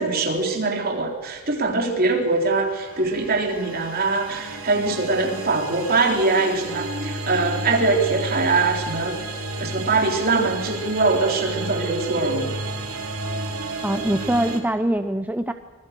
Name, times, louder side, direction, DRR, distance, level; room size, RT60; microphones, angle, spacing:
voice 1, 0.0-9.2 9.6-12.5, right 3 dB, 40° right, 2 dB, 3.8 m, -22 dB
sound 1, 2.3-14.6, right 2 dB, 80° right, 3.6 m, -32 dB
voice 2, 13.8-15.5, right 1 dB, 10° right, 8 dB, 0.6 m, -23 dB
25.5 x 21.0 x 6.8 m, 1.4 s
head